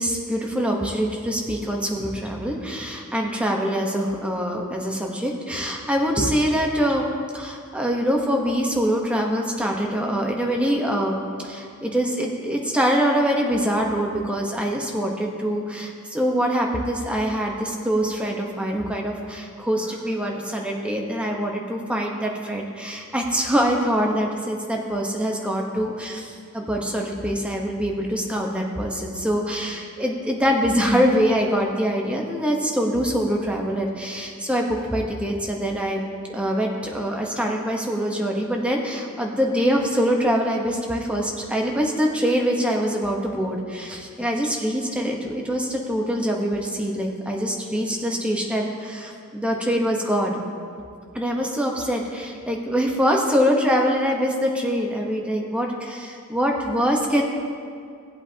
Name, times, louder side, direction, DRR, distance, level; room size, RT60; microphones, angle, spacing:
voice 1, 0.0-7.0 7.3-11.2 11.4-36.0 36.3-50.4 51.1-57.2, equal, 5° right, 0 dB, 0.9 m, -24 dB
17.0 x 8.0 x 2.8 m, 2.3 s
head